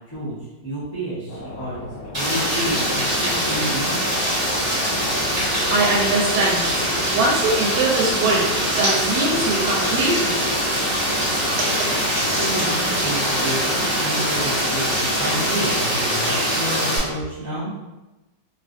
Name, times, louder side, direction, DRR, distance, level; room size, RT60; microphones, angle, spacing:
voice 1, 0.6-1.8 2.1-4.0 12.3-17.7, equal, 20° left, -12 dB, 0.7 m, -30 dB
sound 1, 1.3-16.0, left 2 dB, 75° left, 0.7 m, -37 dB
Rain, 2.1-17.0, equal, 25° right, 1.0 m, -23 dB
voice 2, 5.7-6.8 7.1-10.8 11.5-12.1, right 2 dB, 85° right, -3 dB, 1.3 m, -23 dB
3.1 x 2.4 x 2.5 m, 1.1 s
omnidirectional pair, 1.9 m